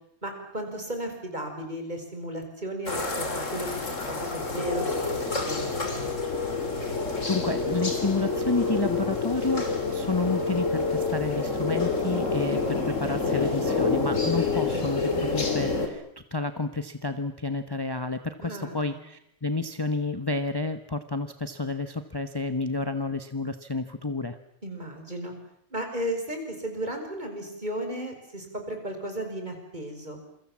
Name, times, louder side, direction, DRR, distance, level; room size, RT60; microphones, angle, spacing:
voice 1, 0.2-3.2 3.5-3.7 4.0-6.0 18.4-19.0 24.6-25.3 25.7-30.2, right 1 dB, 35° right, 4 dB, 6.0 m, -35 dB
sound 1, 2.9-15.9, left 3 dB, 80° left, 3.7 m, -28 dB
voice 2, 7.3-16.0 16.3-24.4, left 3 dB, 20° left, 9 dB, 1.1 m, -30 dB
28.5 x 23.5 x 7.5 m, 0.71 s
omnidirectional pair, 1.3 m